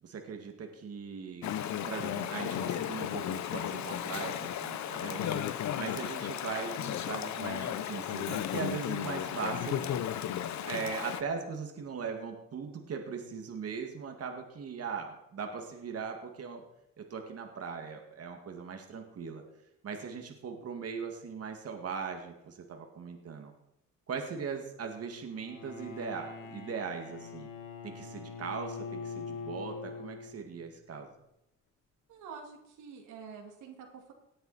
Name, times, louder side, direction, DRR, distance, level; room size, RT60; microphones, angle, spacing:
voice 1, 0.0-1.5 1.8-5.4 5.8-9.8 10.6-16.6 17.0-19.4 19.8-23.5 24.1-27.5 27.8-31.1, right 5 dB, 50° right, 3 dB, 2.1 m, -39 dB
Chatter / Stream, 1.4-11.2, left 10 dB, 65° left, 0.9 m, -34 dB
Bowed string instrument, 25.3-30.6, left 5 dB, 85° left, 1.8 m, -43 dB
voice 2, 32.1-34.1, right 6 dB, 85° right, 2 dB, 2.4 m, -47 dB
18.0 x 7.9 x 4.2 m, 0.84 s
cardioid pair, 90°, 30 cm